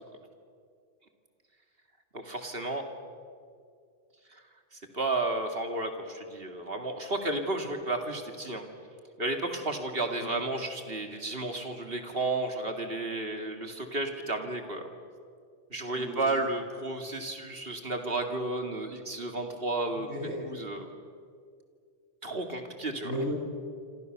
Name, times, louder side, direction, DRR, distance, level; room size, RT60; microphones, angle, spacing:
voice 1, 2.1-2.9 4.3-4.4 4.7-8.6 9.2-14.8 15.7-20.1 20.4-20.9 22.2-23.1, right 2 dB, 60° right, 4 dB, 2.8 m, -32 dB
voice 2, 15.9-16.4 19.9-20.4 23.0-23.3, equal, 75° right, -2 dB, 8.4 m, -35 dB
27.5 x 26.5 x 6.8 m, 2.2 s
omnidirectional pair, 1.1 m